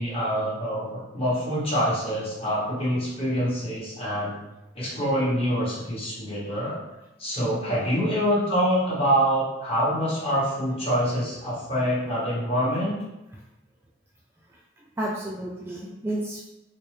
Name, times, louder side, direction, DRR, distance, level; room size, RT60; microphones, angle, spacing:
voice 1, 0.0-4.4 4.7-6.8 7.2-13.0, equal, 30° left, -7 dB, 1.2 m, -25 dB
voice 2, 7.7-8.0 15.0-16.5, right 1 dB, 10° right, -4 dB, 0.3 m, -32 dB
4.4 x 2.1 x 3.2 m, 0.94 s
head